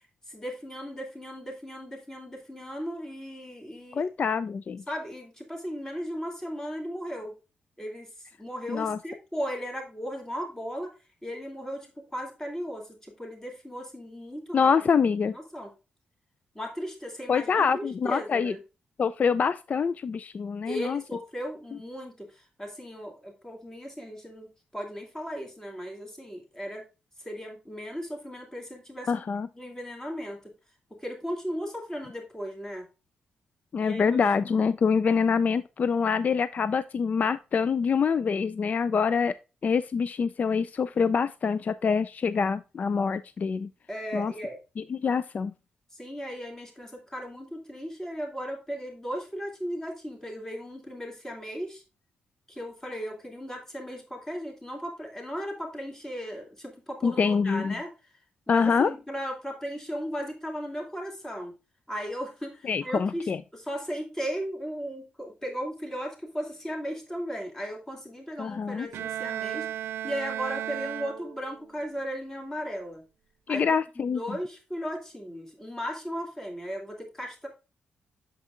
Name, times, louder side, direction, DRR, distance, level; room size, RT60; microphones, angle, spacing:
voice 1, 0.3-4.1 4.9-7.3 7.8-10.9 11.2-14.6 15.3-15.7 16.5-18.6 20.7-26.8 27.2-29.2 29.5-30.4 31.0-32.9 33.8-34.2 43.9-44.6 45.9-51.8 52.5-57.9 58.5-61.5 61.9-69.7 70.0-73.0 73.5-73.7 73.9-77.5, equal, 15° left, 2.7 m, -36 dB
voice 2, 3.9-4.8 8.7-9.0 14.5-15.3 17.3-18.5 19.0-21.0 29.1-29.5 33.7-39.3 39.6-43.7 44.1-44.3 44.9-45.5 57.0-57.7 58.5-58.9 62.6-63.4 68.4-68.9 73.5-74.2, left 6 dB, 45° left, 0.3 m, -25 dB
Bowed string instrument, 68.9-71.6, right 11 dB, 90° right, 0.4 m, -34 dB
8.1 x 7.3 x 2.5 m
cardioid pair, 100°, 4 cm